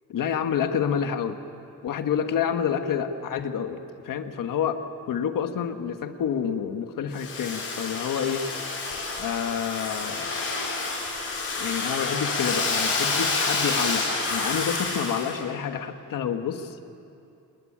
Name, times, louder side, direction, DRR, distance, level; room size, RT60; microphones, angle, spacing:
voice 1, 0.1-1.4 1.8-8.4 9.2-10.3 11.6-16.8, left 8 dB, 80° left, 7 dB, 1.6 m, -28 dB
Domestic sounds home sounds, 7.1-15.4, left 3 dB, 45° left, 5.0 m, -28 dB
28.0 x 20.0 x 8.7 m, 2.7 s
wide cardioid pair, 175°, 32 cm